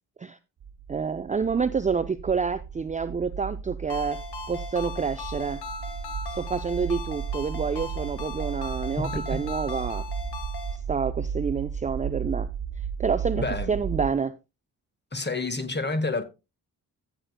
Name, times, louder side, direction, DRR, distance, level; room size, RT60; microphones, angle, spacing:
sound 1, 0.6-14.1, right 7 dB, 60° right, 1.2 m, -34 dB
voice 1, 0.9-4.2 4.5-5.6 6.3-10.1 10.9-12.5 13.0-14.4, right 5 dB, 20° right, 0.4 m, -28 dB
Ringtone, 3.9-10.8, left 5 dB, 60° left, 1.7 m, -39 dB
voice 2, 9.0-9.4 13.4-13.7 15.1-16.2, left 3 dB, 25° left, 1.6 m, -29 dB
15.0 x 6.9 x 2.2 m
hypercardioid pair, 45°, 43 cm